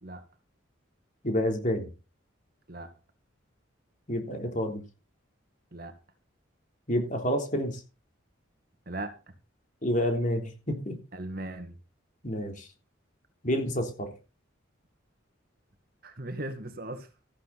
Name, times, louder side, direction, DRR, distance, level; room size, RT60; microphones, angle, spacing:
voice 1, 1.2-1.9 4.1-4.8 6.9-7.8 9.8-11.0 12.2-12.7 13.4-14.1, equal, 40° left, 3.5 m, -29 dB
voice 2, 8.9-9.3 11.1-11.8 16.0-17.1, right 1 dB, 45° right, 1.9 m, -38 dB
14.5 x 11.0 x 4.2 m
head